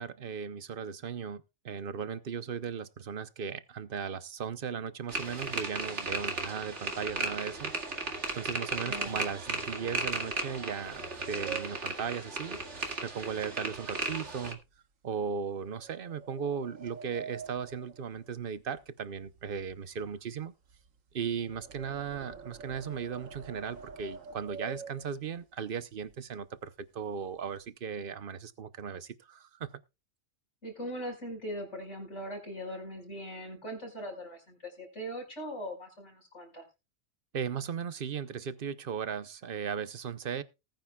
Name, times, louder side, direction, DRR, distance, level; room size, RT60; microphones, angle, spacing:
voice 1, 0.0-7.7 8.3-12.6 13.0-14.6 15.0-20.5 21.1-29.7 37.3-40.4, right 7 dB, 50° right, 1.0 m, -37 dB
sound 1, 5.1-14.5, right 2 dB, 65° right, 2.5 m, -35 dB
sound 2, 8.1-13.5 13.8-14.1 14.6-14.8 15.6-18.9 19.2-25.4 26.0-26.1 26.4-26.7 27.0-27.7, right 5 dB, 85° right, 1.7 m, -48 dB
voice 2, 8.8-9.2 30.6-36.6, equal, 65° left, 5.4 m, -40 dB
19.5 x 9.2 x 2.3 m
omnidirectional pair, 1.3 m